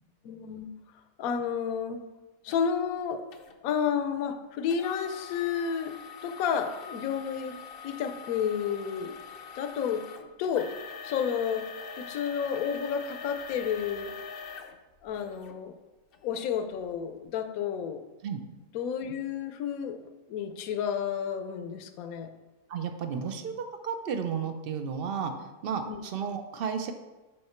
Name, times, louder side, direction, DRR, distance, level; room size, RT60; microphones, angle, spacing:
voice 1, 0.2-0.7 1.2-2.0 2.4-3.2 3.6-5.9 6.2-7.6 7.8-9.2 9.6-10.7 11.0-11.7 12.0-14.1 15.0-15.7 16.2-18.0 18.7-20.0 20.3-22.3 23.2-23.4 25.9-26.0, left 7 dB, 75° left, 7 dB, 1.1 m, -31 dB
sound 1, 2.5-2.6 3.3-3.5 4.7-15.5 16.1-16.2 16.8-17.0, left 6 dB, 60° left, 0.6 m, -43 dB
voice 2, 22.7-23.5 23.8-26.9, right 6 dB, 60° right, 7 dB, 0.6 m, -33 dB
6.4 x 5.9 x 4.4 m, 1.2 s
omnidirectional pair, 1.6 m